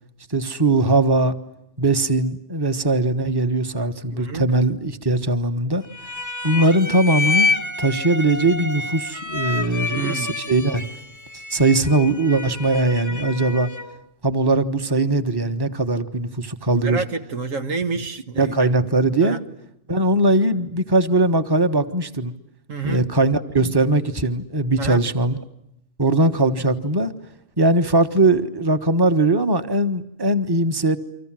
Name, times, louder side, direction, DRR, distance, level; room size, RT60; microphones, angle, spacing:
voice 1, 0.3-1.3 1.8-5.8 6.4-10.9 11.5-13.7 14.2-17.0 18.3-19.4 19.9-22.3 22.8-25.4 26.0-27.1 27.6-31.0, right 2 dB, 20° right, 1.4 m, -20 dB
voice 2, 4.1-4.5 9.9-10.4 16.8-18.7 19.2-19.4 22.7-23.1 24.8-25.0, right 4 dB, 85° right, 2.0 m, -29 dB
sound 1, 5.9-14.0, left 3 dB, 15° left, 0.9 m, -28 dB
29.5 x 25.0 x 7.6 m
omnidirectional pair, 1.3 m